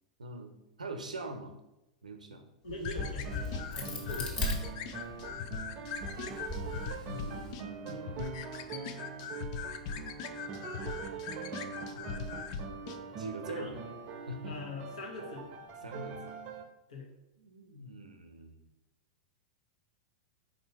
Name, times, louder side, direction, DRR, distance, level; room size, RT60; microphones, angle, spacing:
voice 1, 0.2-0.5 0.8-1.5 2.0-2.4 3.8-4.2 5.2-5.4 7.0-8.0 11.9-12.3 13.2-13.8 14.3-14.6 15.8-16.4 17.4-18.6, right 1 dB, 85° right, 6 dB, 0.6 m, -43 dB
voice 2, 2.6-4.3 13.5-13.7 14.5-15.5 16.9-17.1, left 2 dB, 70° left, 0 dB, 1.0 m, -42 dB
Crack, 2.7-5.3 5.9-7.5, left 2 dB, 30° left, 1.3 m, -38 dB
sound 1, 2.8-13.0, left 6 dB, 50° left, 0.4 m, -41 dB
sound 2, 3.0-16.6, right 5 dB, 40° right, 0.6 m, -43 dB
4.4 x 2.7 x 4.4 m, 0.93 s
hypercardioid pair, 100°, 4 cm